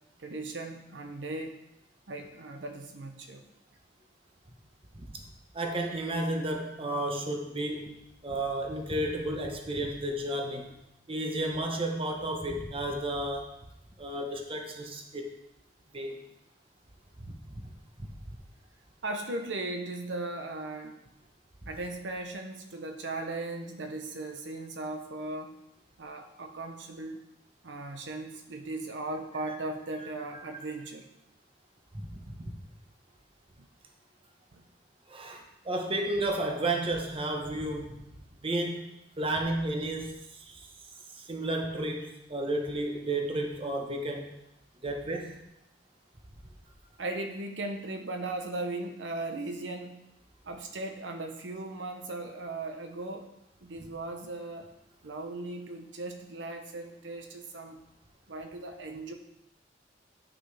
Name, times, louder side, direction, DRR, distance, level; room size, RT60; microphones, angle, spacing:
voice 1, 0.2-1.5 2.1-3.4 19.0-21.0 21.7-25.5 26.0-27.2 27.6-31.1 33.6-33.7 34.5-34.6 47.0-50.0 50.4-53.3 53.6-54.7 55.0-57.8 58.3-59.1, right 2 dB, 80° right, 4 dB, 0.9 m, -37 dB
voice 2, 5.5-7.9 8.2-10.7 11.1-13.6 14.0-15.3 15.9-16.2 17.2-17.7 18.0-18.1 29.4-29.5 30.3-30.4 31.9-32.5 35.1-38.0 38.4-40.7 41.1-44.3 44.8-45.5, right 1 dB, 30° right, 2 dB, 1.0 m, -32 dB
9.4 x 5.9 x 3.4 m, 0.86 s
head